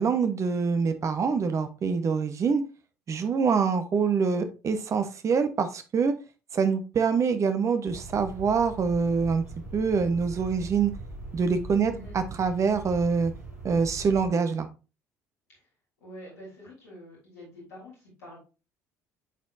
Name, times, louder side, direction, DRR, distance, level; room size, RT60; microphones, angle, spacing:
voice 1, 0.0-2.6 3.1-6.1 6.5-9.4 9.7-10.9 11.3-13.3 13.6-14.7, right 5 dB, 40° right, 9 dB, 1.1 m, -25 dB
sound 1, 7.9-14.3, right 2 dB, 90° right, 2.0 m, -41 dB
voice 2, 11.8-12.1 15.5-15.6 16.0-18.4, left 1 dB, 75° left, -6 dB, 3.5 m, -46 dB
10.0 x 4.3 x 2.6 m, 0.32 s
figure-of-eight pair, 60°, 8 cm